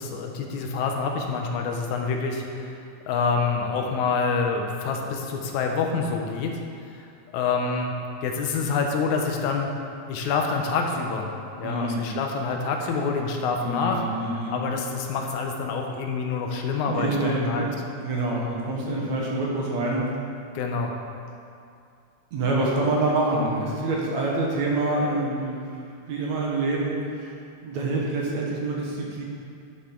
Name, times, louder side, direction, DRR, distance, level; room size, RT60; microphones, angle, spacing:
voice 1, 0.0-2.8 3.1-6.6 6.9-7.1 7.3-7.9 8.2-9.7 10.1-11.3 11.6-14.0 14.5-17.7 20.5-20.9, left 4 dB, 80° left, 2 dB, 2.2 m, -27 dB
voice 2, 11.6-12.0 13.6-14.6 16.8-17.7 18.0-20.1 22.3-29.2, right 2 dB, 70° right, -3 dB, 2.5 m, -26 dB
10.5 x 7.4 x 3.8 m, 2.4 s
omnidirectional pair, 3.4 m